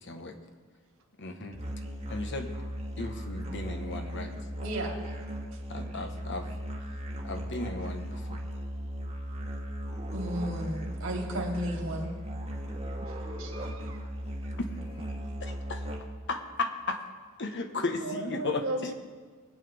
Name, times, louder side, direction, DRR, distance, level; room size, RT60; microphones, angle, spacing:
voice 1, 0.0-0.4 1.2-1.6 2.1-2.5 3.0-4.3 5.7-6.5 7.2-8.4 15.4-15.8 16.3-17.0 17.4-18.6, left 3 dB, 60° left, 6 dB, 1.2 m, -35 dB
Musical instrument, 1.5-16.3, equal, 30° right, 1.4 m, -37 dB
voice 2, 4.6-5.0 10.1-12.1 13.4-13.5, right 1 dB, 70° right, 0 dB, 2.7 m, -33 dB
voice 3, 13.0-14.2 18.0-18.9, right 2 dB, 90° right, 4 dB, 1.0 m, -37 dB
22.0 x 9.0 x 3.5 m, 1.5 s
head